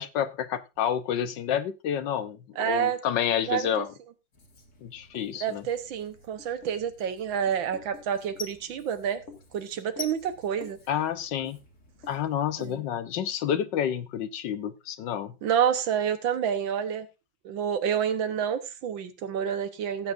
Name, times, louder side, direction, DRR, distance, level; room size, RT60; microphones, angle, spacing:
voice 1, 0.0-3.9 4.8-5.6 10.9-11.6 12.1-15.4, left 9 dB, 70° left, 1.4 m, -29 dB
voice 2, 2.6-3.0 3.5-3.8 5.4-9.2 9.5-10.8 12.6-12.8 15.4-17.1 17.5-20.1, right 8 dB, 80° right, 1.8 m, -28 dB
Writing, 4.3-12.8, left 4 dB, 40° left, 2.0 m, -47 dB
17.0 x 8.2 x 2.5 m
omnidirectional pair, 2.1 m